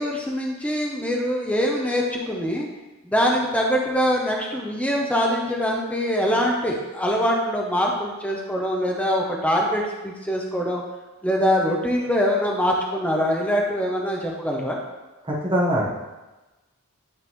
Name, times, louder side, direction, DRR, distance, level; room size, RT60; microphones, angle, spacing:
voice 1, 0.0-2.7 3.0-10.8 11.2-14.8, equal, 5° left, -1 dB, 0.6 m, -23 dB
voice 2, 15.2-15.8, equal, 25° right, -4 dB, 1.1 m, -22 dB
9.6 x 3.7 x 3.0 m, 1.1 s
head